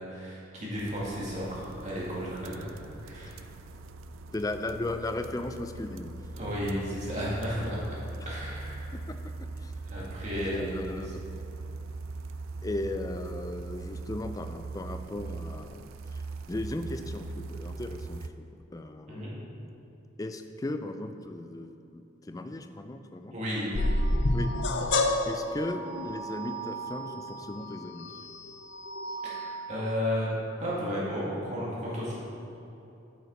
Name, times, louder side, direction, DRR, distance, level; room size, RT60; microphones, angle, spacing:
voice 1, 0.0-2.8 3.0-3.4 6.3-8.0 8.3-8.9 9.9-10.9 19.1-19.4 23.3-24.0 29.2-30.3 30.6-32.1, equal, 35° right, -6 dB, 2.2 m, -33 dB
sound 1, 0.7-18.3, right 3 dB, 90° right, 0.4 m, -41 dB
voice 2, 4.3-6.1 8.9-9.2 9.6-9.7 10.3-11.2 12.6-19.3 20.2-23.4 24.3-24.8 25.3-28.1, left 2 dB, 20° left, 8 dB, 0.4 m, -36 dB
sound 2, 23.7-29.9, left 1 dB, 60° left, 0.6 m, -30 dB
8.8 x 8.2 x 4.2 m, 2.8 s
head